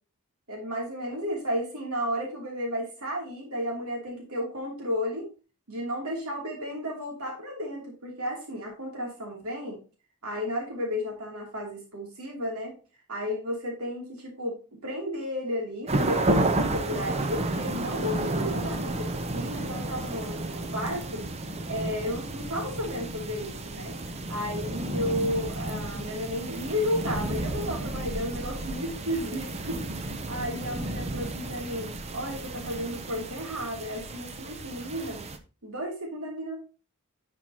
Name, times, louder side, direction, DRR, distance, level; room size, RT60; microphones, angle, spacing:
voice 1, 0.5-5.3 5.7-9.8 10.2-12.7 13.1-14.6 14.8-21.2 21.7-23.9 24.3-35.2 35.6-36.6, equal, 80° right, -1 dB, 2.9 m, -33 dB
sound 1, 15.9-35.4, right 2 dB, 30° right, 0.7 m, -32 dB
11.0 x 5.8 x 2.9 m, 0.33 s
head